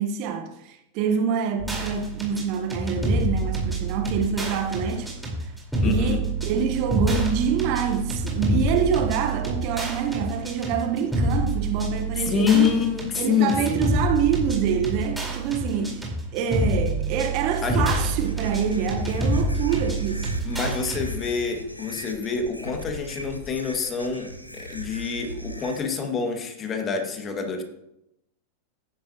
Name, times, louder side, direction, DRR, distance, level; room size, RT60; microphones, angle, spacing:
voice 1, 0.0-5.1 5.4-5.5 5.8-12.8 13.2-20.3, right 7 dB, 45° right, 1.3 m, -26 dB
sound 1, 1.6-21.0, right 2 dB, 5° right, 4.4 m, -27 dB
voice 2, 5.8-6.2 8.7-8.8 12.2-13.9 17.6-17.9 20.4-27.6, left 6 dB, 25° left, 2.2 m, -26 dB
sound 2, 18.2-25.8, equal, 90° left, 1.5 m, -38 dB
13.5 x 11.0 x 3.0 m
figure-of-eight pair, 90°, 0 cm